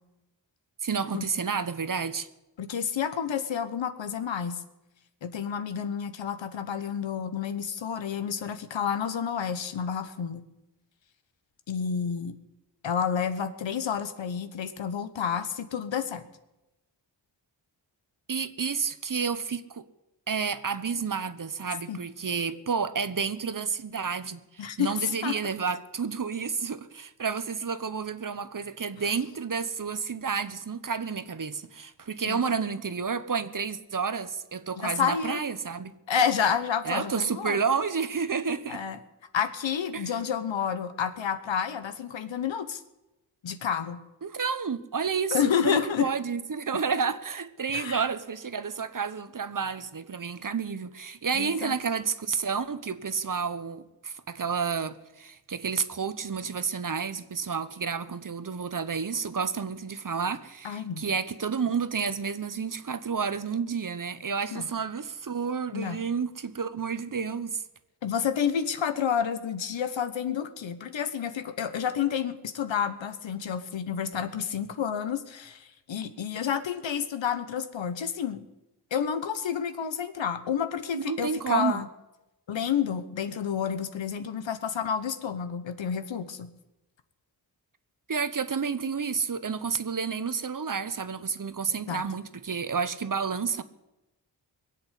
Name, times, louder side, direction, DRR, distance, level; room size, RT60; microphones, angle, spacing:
voice 1, 0.8-2.3 18.3-19.8 20.3-35.9 36.8-38.8 39.9-40.1 44.2-67.6 80.9-81.8 88.1-93.6, right 6 dB, 45° right, 1.1 m, -30 dB
voice 2, 2.6-4.6 5.2-10.5 11.7-12.4 12.8-16.3 21.9-22.0 24.6-25.4 29.0-29.1 32.2-32.6 34.8-35.4 36.1-37.6 38.7-39.0 39.3-42.8 43.4-44.0 45.3-46.1 47.7-48.0 51.3-51.7 60.6-61.1 64.5-64.7 65.7-66.0 68.0-78.4 78.9-81.9 82.5-86.5 91.9-92.0, left 7 dB, 85° left, 1.2 m, -30 dB
21.0 x 7.9 x 8.3 m
cardioid pair, 50°, 44 cm